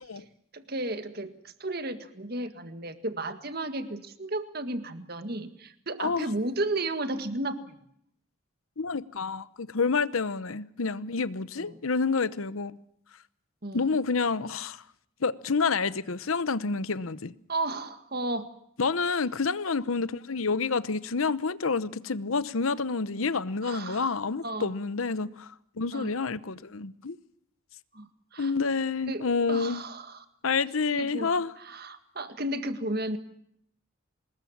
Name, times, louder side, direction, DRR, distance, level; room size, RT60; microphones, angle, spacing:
voice 1, 0.5-7.8 11.6-11.8 13.6-13.9 17.5-18.5 23.6-24.2 24.4-24.7 25.9-26.1 27.9-28.5 29.1-30.3 31.0-31.3 31.6-33.2, right 2 dB, 45° right, 1.8 m, -34 dB
voice 2, 8.8-12.8 13.7-14.8 15.2-17.3 18.8-25.5 25.8-27.2 28.4-29.8 30.4-31.5, left 4 dB, 80° left, 0.9 m, -28 dB
26.0 x 21.0 x 7.3 m
head